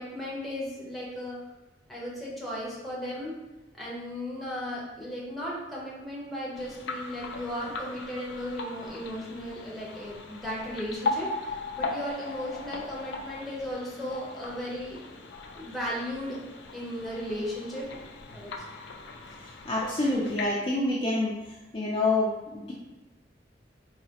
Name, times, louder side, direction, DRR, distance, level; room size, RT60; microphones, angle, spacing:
voice 1, 0.0-1.4 1.9-3.3 3.7-15.0 15.5-16.4 16.7-17.9 18.3-18.5, equal, ahead, -6 dB, 0.8 m, -36 dB
sound 1, 6.5-20.5, left 3 dB, 80° left, 0.4 m, -38 dB
voice 2, 19.7-21.3 21.7-22.7, left 2 dB, 30° left, -5 dB, 0.5 m, -27 dB
4.0 x 2.8 x 2.8 m, 1.1 s
head